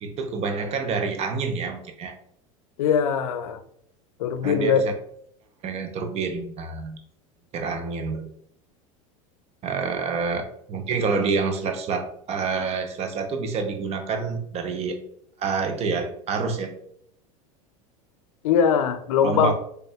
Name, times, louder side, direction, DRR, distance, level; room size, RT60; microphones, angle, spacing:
voice 1, 0.0-2.1 4.4-4.8 5.6-7.0 7.5-8.3 9.6-15.0 15.4-16.7 19.2-19.5, right 4 dB, 35° right, 6 dB, 0.7 m, -27 dB
voice 2, 2.8-3.6 4.2-4.8 18.4-19.5, left 7 dB, 85° left, 11 dB, 0.5 m, -21 dB
4.2 x 3.3 x 2.3 m, 0.68 s
supercardioid pair, 105°, 18 cm